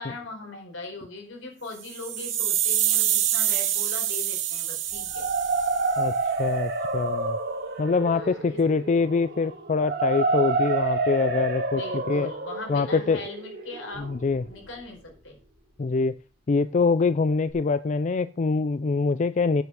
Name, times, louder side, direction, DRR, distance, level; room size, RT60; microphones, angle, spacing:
voice 1, 0.0-5.3 8.0-8.8 11.7-14.1 14.5-15.4, left 2 dB, 80° left, 2 dB, 4.4 m, -40 dB
sound 1, 1.8-6.0, right 11 dB, 85° right, 2.0 m, -26 dB
sound 2, 4.9-14.8, right 3 dB, 55° right, 2.3 m, -29 dB
voice 2, 6.4-7.4 7.8-12.3 12.7-13.2 14.0-14.4 15.8-16.2 16.5-19.6, left 4 dB, 40° left, 14 dB, 0.4 m, -24 dB
9.3 x 6.0 x 6.8 m, 0.35 s
head